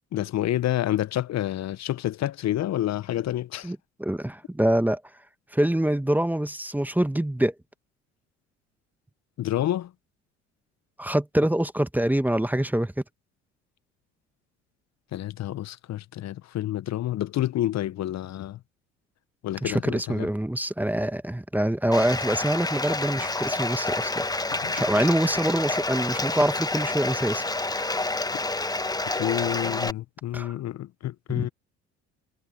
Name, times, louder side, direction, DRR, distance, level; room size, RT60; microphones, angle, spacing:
voice 1, 0.1-3.7 9.4-9.9 15.1-18.6 19.4-20.3 24.6-24.8 29.2-31.5, left 13 dB, 50° left, 1.1 m, -28 dB
voice 2, 3.6-5.0 5.5-7.5 11.0-12.9 19.6-27.4 30.3-30.5 31.3-31.5, right 1 dB, 5° right, 1.4 m, -25 dB
Bathtub (filling or washing), 21.9-29.9, left 2 dB, 10° left, 1.2 m, -28 dB
hypercardioid pair, 60°, 35 cm